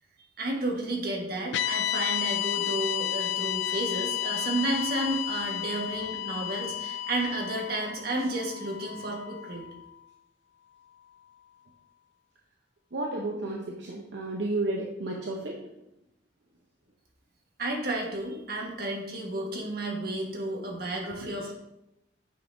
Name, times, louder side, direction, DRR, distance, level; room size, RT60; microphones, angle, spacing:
voice 1, 0.4-9.7 17.6-21.5, right 2 dB, 60° right, -1 dB, 1.5 m, -32 dB
sound 1, 1.5-9.8, left 11 dB, 85° left, 0.4 m, -32 dB
voice 2, 12.9-15.6 21.2-21.4, right 2 dB, 75° right, -1 dB, 0.8 m, -32 dB
8.7 x 5.2 x 2.7 m, 0.88 s
head